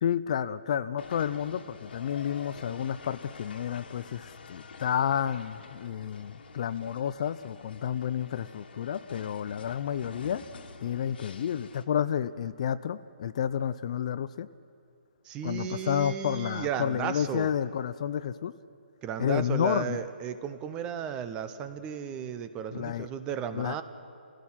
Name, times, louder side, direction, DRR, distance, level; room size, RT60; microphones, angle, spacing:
voice 1, 0.0-10.4 10.8-14.5 15.4-18.5 19.2-20.0 22.7-23.1 23.5-23.8, left 9 dB, 35° left, 15 dB, 0.4 m, -30 dB
sound 1, 1.0-11.8, left 4 dB, 60° left, 1.7 m, -48 dB
voice 2, 15.2-17.5 19.0-23.8, right 8 dB, 15° right, 11 dB, 0.7 m, -34 dB
29.5 x 16.0 x 5.7 m, 2.5 s
hypercardioid pair, 165°, 6 cm